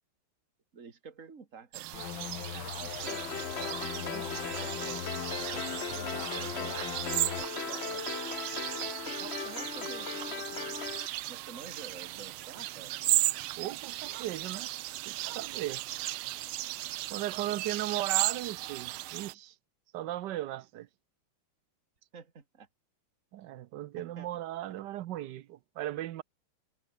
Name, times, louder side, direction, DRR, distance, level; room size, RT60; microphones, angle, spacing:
voice 1, 0.7-2.1 2.5-5.0 5.5-8.1 8.9-10.8 11.3-13.0 17.4-17.6 22.1-22.7 24.0-24.3 24.7-24.8, right 5 dB, 40° right, 2.8 m, -50 dB
sound 1, 1.7-19.3, right 17 dB, 90° right, 1.5 m, -36 dB
sound 2, 1.9-7.5, left 11 dB, 75° left, 1.9 m, -40 dB
sound 3, 3.1-11.1, left 5 dB, 35° left, 1.4 m, -38 dB
voice 2, 13.6-14.7 15.1-15.9 17.1-19.5 19.9-20.9 23.3-26.2, right 14 dB, 65° right, 1.3 m, -37 dB
omnidirectional pair, 2.2 m